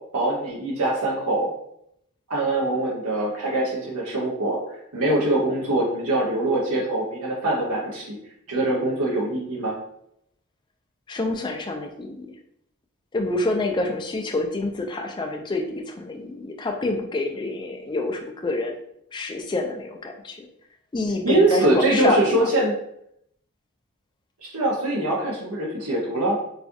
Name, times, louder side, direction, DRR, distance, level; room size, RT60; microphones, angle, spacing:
voice 1, 0.1-1.5 2.3-4.6 4.9-8.2 8.5-9.7 21.2-22.7 24.4-26.4, right 2 dB, 85° right, -4 dB, 0.8 m, -23 dB
voice 2, 11.1-12.4 13.1-18.8 19.1-20.5 20.9-22.5, left 2 dB, 20° left, 3 dB, 0.3 m, -27 dB
4.1 x 2.3 x 2.6 m, 0.74 s
head